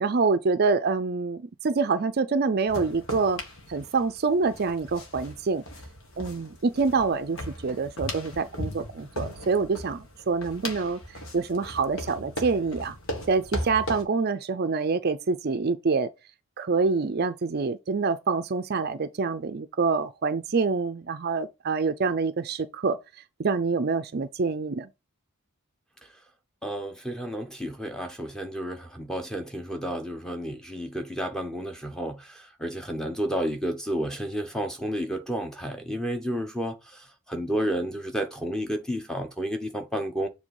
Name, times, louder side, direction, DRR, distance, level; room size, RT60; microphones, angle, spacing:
voice 1, 0.0-3.4 3.7-5.6 6.2-11.0 11.3-13.0 13.3-16.1 16.6-23.0 23.4-24.9, right 4 dB, 45° right, 0.5 m, -26 dB
sound 1, 2.7-14.0, left 1 dB, 65° left, 1.7 m, -38 dB
voice 2, 26.6-40.3, equal, 5° left, 0.8 m, -31 dB
7.6 x 3.3 x 4.7 m
head